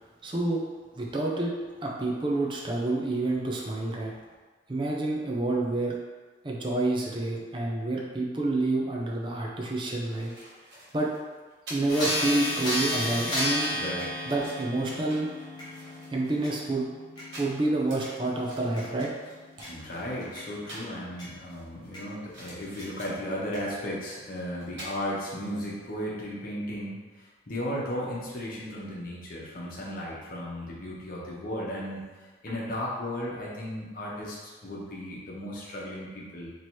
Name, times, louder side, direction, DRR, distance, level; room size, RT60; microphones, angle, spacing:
voice 1, 0.2-0.6 1.0-1.5 1.8-4.1 4.7-5.9 6.4-10.3 10.9-11.1 11.7-13.7 14.3-15.3 16.1-16.9 17.4-19.1, right 2 dB, 25° right, -2 dB, 0.5 m, -28 dB
sound 1, 10.0-21.0 21.4-23.3 24.3-24.4 24.6-24.9, right 1 dB, 65° right, 1.4 m, -48 dB
sound 2, 11.9-21.3 21.9-22.0 22.8-22.9 23.5-23.6, left 1 dB, 20° left, 0.9 m, -34 dB
voice 2, 13.7-14.1 19.7-36.5, equal, 50° left, -5 dB, 0.9 m, -35 dB
3.0 x 2.9 x 4.5 m, 1.4 s
head